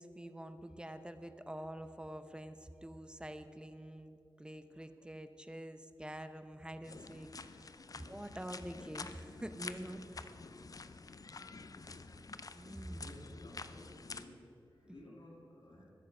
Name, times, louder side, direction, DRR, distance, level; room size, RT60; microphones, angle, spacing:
voice 1, 0.0-10.0 12.5-13.1, right 1 dB, 10° right, 9 dB, 0.8 m, -47 dB
sound 1, 6.8-14.2, left 4 dB, 45° left, 0.6 m, -49 dB
voice 2, 11.3-12.0 12.9-14.4 14.8-15.9, left 1 dB, 65° left, -4 dB, 2.7 m, -56 dB
21.0 x 7.4 x 5.5 m, 2.8 s
wide cardioid pair, 70°, 9 cm